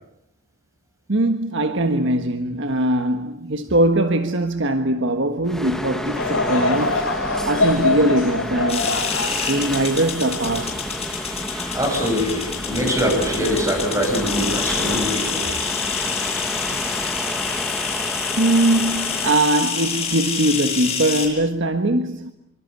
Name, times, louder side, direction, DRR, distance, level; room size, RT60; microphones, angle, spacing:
voice 1, 1.1-7.0 7.4-8.9 9.5-10.8 15.2-15.3 18.4-22.3, right 1 dB, 55° right, 1.4 m, -21 dB
sound 1, 5.5-20.6, equal, ahead, 1.6 m, -30 dB
Laughter / Crowd, 6.1-11.5 12.1-12.2 13.0-13.2, left 2 dB, 65° left, 7.7 m, -25 dB
sound 2, 8.7-21.3, left 6 dB, 30° left, 5.9 m, -27 dB
voice 2, 11.7-15.5, equal, 15° right, 7.9 m, -23 dB
25.5 x 25.0 x 8.3 m
head